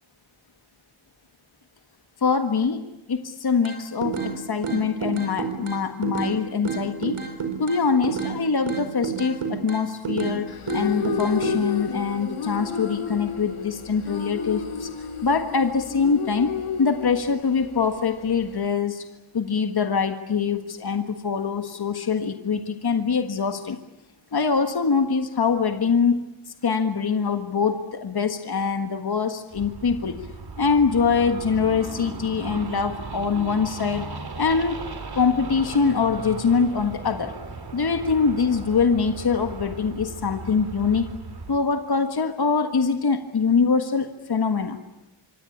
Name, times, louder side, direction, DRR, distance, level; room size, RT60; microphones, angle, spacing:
voice 1, 2.2-7.2 7.6-10.5 10.7-14.9 15.2-16.5 16.8-19.1 19.3-23.8 24.3-26.2 26.6-30.2 30.6-34.1 34.4-34.8 35.1-37.3 37.7-41.1 41.5-44.8, left 5 dB, 50° left, 7 dB, 1.6 m, -23 dB
sound 1, 3.6-4.3 4.6-6.3 6.6-8.4 8.7-10.4 10.7-11.6, right 6 dB, 80° right, 4.9 m, -29 dB
sound 2, 10.5-18.7, left 7 dB, 85° left, 2.7 m, -31 dB
sound 3, 29.5-41.6, right 3 dB, 50° right, 2.9 m, -37 dB
26.0 x 25.0 x 8.6 m, 0.94 s
wide cardioid pair, 90°, 49 cm